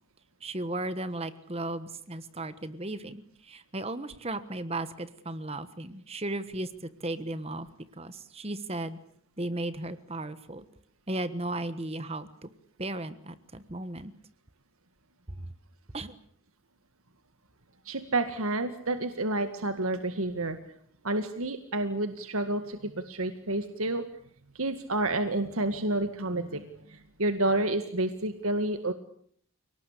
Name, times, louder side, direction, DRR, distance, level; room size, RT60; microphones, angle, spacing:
voice 1, 0.4-7.7 8.0-9.0 9.4-10.6 11.1-12.5 12.8-14.1 15.3-15.5 15.9-16.2, right 2 dB, 30° right, 13 dB, 1.3 m, -35 dB
voice 2, 17.9-20.6 21.0-24.1 24.6-28.9, right 2 dB, 85° right, 9 dB, 2.0 m, -29 dB
29.5 x 19.0 x 8.4 m, 0.64 s
head